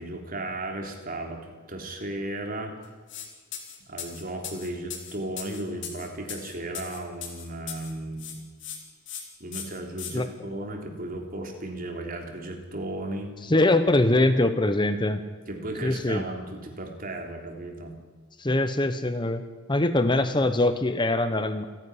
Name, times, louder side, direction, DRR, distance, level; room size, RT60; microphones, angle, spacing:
voice 1, 0.0-2.7 3.9-8.4 9.4-13.3 15.5-18.0, right 1 dB, 45° right, 3 dB, 3.5 m, -35 dB
sound 1, 3.1-3.3 3.5-7.9 8.2-8.8 9.1-9.2 9.5-10.1, left 9 dB, 60° left, 3.7 m, -38 dB
voice 2, 13.5-15.2 15.8-16.2 18.4-19.4 19.7-21.7, left 2 dB, 20° left, 10 dB, 1.0 m, -23 dB
28.5 x 10.5 x 9.9 m, 1.5 s
head